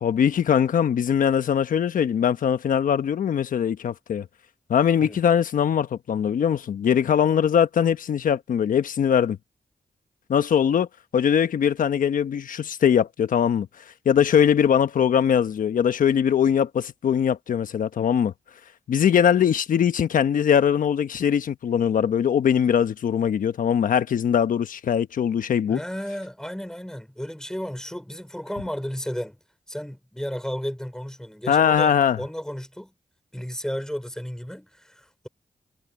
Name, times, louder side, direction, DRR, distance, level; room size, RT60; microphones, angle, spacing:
voice 1, 0.0-4.3 4.7-9.4 10.3-10.9 11.1-13.7 14.0-18.3 18.9-25.8 31.5-32.2, left 8 dB, 80° left, 1.1 m, -21 dB
voice 2, 25.7-29.4 29.7-32.9 33.3-35.3, equal, 5° left, 4.5 m, -33 dB
cardioid pair, 55°, 14 cm